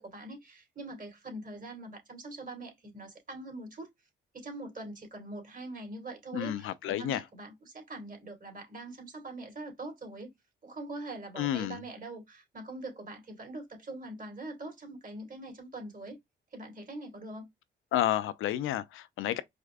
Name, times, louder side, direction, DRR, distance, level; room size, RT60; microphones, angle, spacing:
voice 1, 0.0-3.9 4.3-10.3 10.6-16.2 16.5-17.5, right 2 dB, 40° right, 2.4 m, -43 dB
voice 2, 6.3-7.2 11.4-11.8 17.9-19.4, left 12 dB, 85° left, 0.5 m, -30 dB
4.9 x 2.2 x 2.3 m
cardioid pair, 75°, 20 cm